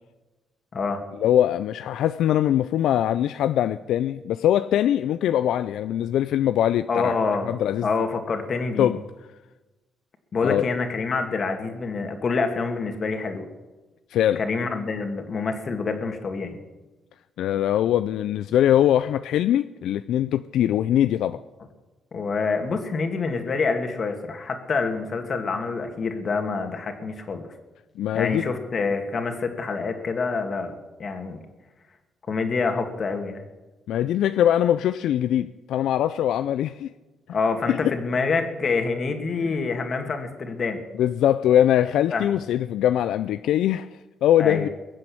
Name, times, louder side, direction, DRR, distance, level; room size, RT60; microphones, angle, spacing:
voice 1, 1.2-7.1 7.4-7.9 8.8-9.0 10.4-10.6 14.1-14.4 17.4-21.4 28.0-28.4 33.9-36.9 37.7-37.9 39.4-39.6 40.9-43.9 44.2-44.7, left 11 dB, 80° left, 0.4 m, -22 dB
voice 2, 6.9-7.5 7.8-8.9 10.3-13.5 14.4-16.6 22.1-27.4 28.1-30.7 31.0-31.4 32.3-33.4 37.3-40.8 42.1-42.4 44.4-44.7, left 4 dB, 45° left, 2.4 m, -26 dB
22.0 x 7.6 x 8.7 m
cardioid pair, 90°, 0 cm